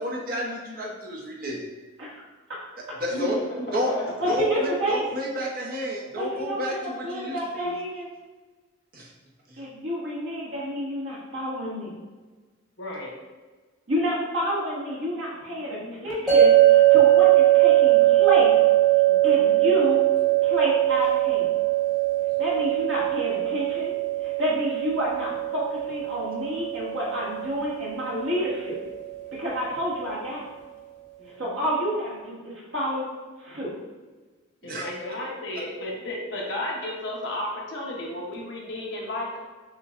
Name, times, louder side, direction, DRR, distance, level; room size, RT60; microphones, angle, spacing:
voice 1, 0.0-1.6 3.0-3.4 3.7-3.9 4.2-7.8 8.9-9.1 9.5-9.6 34.6-34.8, equal, 45° right, -2 dB, 0.8 m, -31 dB
voice 2, 3.1-4.3 12.8-13.1 15.6-16.1 19.1-19.8 22.4-22.7 31.2-31.7 34.6-39.4, left 1 dB, 60° left, -3 dB, 0.9 m, -34 dB
voice 3, 4.2-5.1 6.2-6.7 7.0-8.1 9.6-11.9 13.9-18.5 19.2-20.0 20.4-21.5 22.4-28.8 29.3-30.4 31.4-33.1 33.4-33.7, equal, 70° right, -6 dB, 1.4 m, -29 dB
sound 1, 16.3-29.4, right 14 dB, ahead, 1.3 m, -21 dB
6.6 x 2.3 x 2.5 m, 1.3 s
head